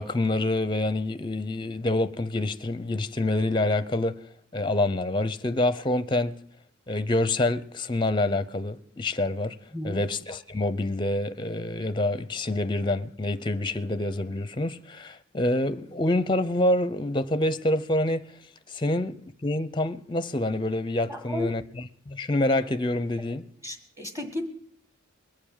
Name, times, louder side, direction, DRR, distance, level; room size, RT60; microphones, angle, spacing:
voice 1, 0.0-4.2 4.5-6.4 6.9-9.6 9.8-18.3 18.7-21.6 22.1-23.4, left 1 dB, 20° left, 0.6 m, -27 dB
voice 2, 21.1-21.5 23.6-24.4, left 1 dB, 15° right, 1.6 m, -33 dB
21.0 x 7.1 x 8.9 m
head